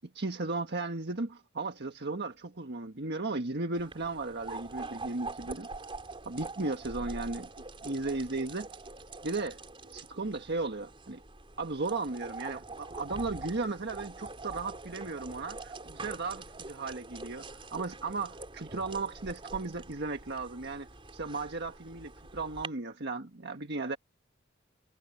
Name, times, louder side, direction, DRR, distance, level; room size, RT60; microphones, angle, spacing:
voice 1, 0.1-5.7 6.3-7.5 7.8-8.7 9.2-9.6 9.9-11.2 11.6-24.0, right 3 dB, 55° right, 1.5 m, -35 dB
sound 1, 3.8-22.7, right 3 dB, 25° right, 4.4 m, -44 dB
head